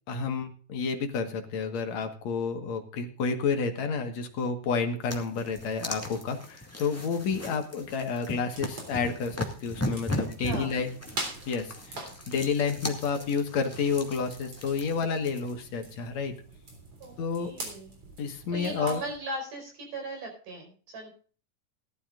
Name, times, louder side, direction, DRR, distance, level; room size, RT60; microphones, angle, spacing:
voice 1, 0.1-10.9 11.5-16.4 17.2-17.5 18.2-19.0, left 5 dB, 60° left, 5 dB, 2.5 m, -30 dB
sound 1, 5.0-15.5, left 1 dB, 5° left, 1.4 m, -38 dB
sound 2, 8.5-19.2, right 2 dB, 45° right, 4.5 m, -44 dB
voice 2, 10.4-10.7 17.0-17.9 18.5-21.1, right 1 dB, 70° right, 3 dB, 6.4 m, -38 dB
18.5 x 12.5 x 2.5 m, 0.40 s
omnidirectional pair, 3.9 m